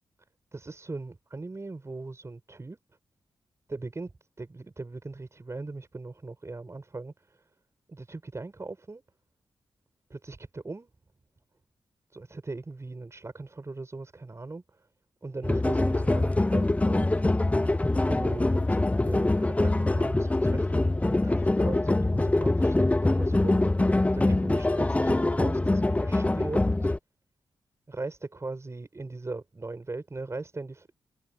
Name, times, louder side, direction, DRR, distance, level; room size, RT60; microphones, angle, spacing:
voice 1, 0.5-2.8 3.7-4.1 4.4-7.4 7.9-9.0 10.1-10.9 12.1-14.8 15.2-17.2 18.1-26.9 27.9-30.9, right 3 dB, 30° right, 6.8 m, -39 dB
sound 1, 15.4-27.0, left 2 dB, 15° left, 0.6 m, -24 dB
cardioid pair, 65°, 9 cm